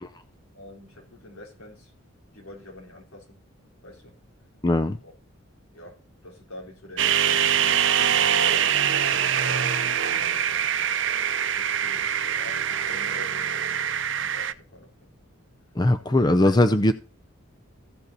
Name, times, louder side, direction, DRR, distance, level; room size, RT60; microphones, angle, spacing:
voice 1, 0.5-1.9 2.3-3.4 3.8-4.2 5.0-5.1 5.7-10.9 11.5-15.1 16.1-16.5, left 1 dB, 90° left, 4.2 m, -45 dB
voice 2, 4.6-5.0 15.8-16.9, left 1 dB, 20° left, 0.5 m, -20 dB
sound 1, 7.0-14.5, right 9 dB, 60° right, 0.7 m, -24 dB
15.0 x 5.5 x 4.0 m
head